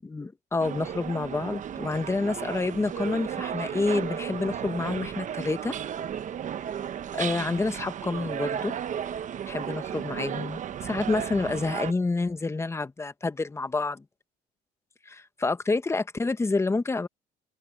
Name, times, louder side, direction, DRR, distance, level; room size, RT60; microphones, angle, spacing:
voice 1, 0.0-5.7 7.1-8.7 9.5-14.0 15.1-17.1, left 3 dB, 15° left, 1.0 m, -28 dB
sound 1, 0.6-11.9, right 9 dB, 50° right, 1.1 m, -34 dB
open air
cardioid pair, 110°, 17 cm